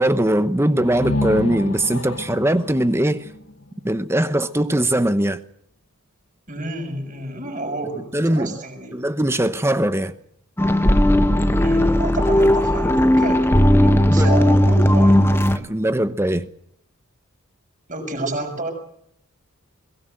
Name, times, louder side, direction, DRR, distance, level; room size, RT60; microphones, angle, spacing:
voice 1, 0.0-3.3 3.8-5.4 8.1-8.5 8.9-10.1 14.1-14.3 15.5-16.5, right 1 dB, 10° right, 0.8 m, -20 dB
sound 1, 0.8-4.5, left 2 dB, 65° left, 1.3 m, -29 dB
voice 2, 6.5-8.9 11.6-15.5 17.9-18.7, right 2 dB, 35° right, 6.5 m, -30 dB
sound 2, 10.6-15.6, left 1 dB, 10° left, 1.1 m, -16 dB
22.5 x 18.5 x 7.9 m
head